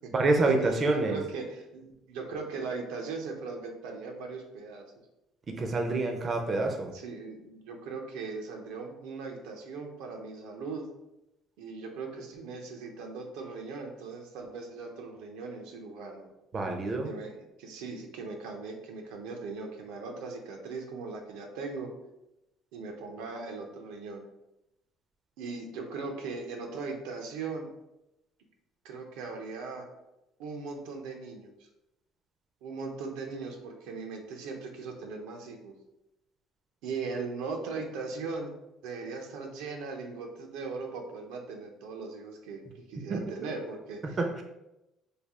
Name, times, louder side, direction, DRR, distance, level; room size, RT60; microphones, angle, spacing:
voice 1, 0.1-1.2 5.5-6.9 16.5-17.1 43.1-43.2 44.2-44.4, right 3 dB, 35° right, 3 dB, 0.4 m, -27 dB
voice 2, 1.0-4.8 6.9-10.8 11.6-16.3 17.0-21.9 22.7-24.2 25.4-27.7 28.8-29.9 30.4-31.5 32.6-35.7 36.8-38.5 38.8-44.2, right 4 dB, 90° right, 2 dB, 0.6 m, -39 dB
3.3 x 2.3 x 3.5 m, 0.90 s
cardioid pair, 120°, 0 cm